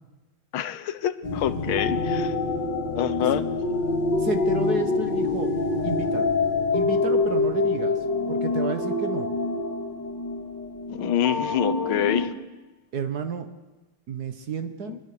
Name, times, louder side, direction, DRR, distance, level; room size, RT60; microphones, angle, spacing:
voice 1, 0.5-2.4 3.0-3.5 10.9-12.3 14.9-15.0, left 10 dB, 85° left, 13 dB, 1.8 m, -26 dB
sound 1, 1.2-12.3, left 3 dB, 55° left, 3.0 m, -26 dB
voice 2, 4.2-5.5 5.8-6.3 6.7-7.9 8.3-9.3 12.9-13.5 14.1-15.0, right 5 dB, 55° right, 8 dB, 1.6 m, -31 dB
23.5 x 20.0 x 6.7 m, 1.2 s
omnidirectional pair, 2.2 m